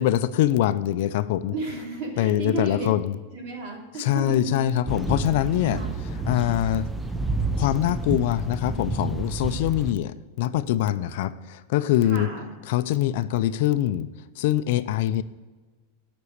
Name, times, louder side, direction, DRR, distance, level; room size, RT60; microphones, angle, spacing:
voice 1, 0.0-1.5 2.2-3.1 4.0-5.8 6.2-6.9 7.6-12.3 12.7-14.1 14.4-15.2, left 13 dB, 60° left, 13 dB, 0.4 m, -23 dB
voice 2, 1.5-2.9 3.3-4.6 5.6-6.0 12.0-12.5, right 3 dB, 50° right, -1 dB, 3.3 m, -33 dB
sound 1, 4.9-9.9, right 2 dB, 5° right, 0.5 m, -29 dB
9.8 x 6.1 x 6.6 m, 1.3 s
supercardioid pair, 160°, 0 cm